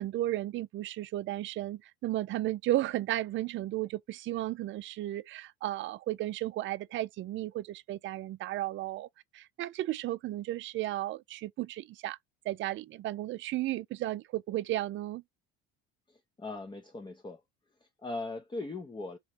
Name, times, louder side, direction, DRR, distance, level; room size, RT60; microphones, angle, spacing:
voice 1, 0.0-9.1 9.3-12.2 12.4-15.2, right 15 dB, 40° right, 0.4 m, -34 dB
voice 2, 16.1-17.4 17.8-19.2, left 2 dB, 15° left, 0.7 m, -40 dB
3.8 x 3.0 x 3.3 m
supercardioid pair, 90°, 30 cm